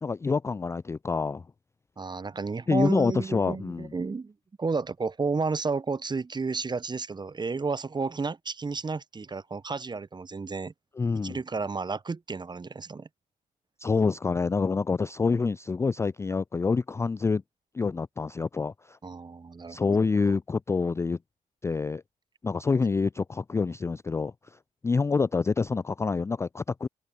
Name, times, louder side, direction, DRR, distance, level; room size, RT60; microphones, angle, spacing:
voice 1, 0.0-1.4 2.7-3.9 11.0-11.4 13.8-17.4 17.7-19.0 19.7-21.2 21.6-22.0 22.4-24.3 24.8-26.9, left 4 dB, 15° left, 0.3 m, -27 dB
voice 2, 2.0-4.3 4.6-10.7 11.2-13.1 19.0-20.0 20.3-20.4, right 4 dB, 25° right, 1.0 m, -32 dB
open air
figure-of-eight pair, 45°, 19 cm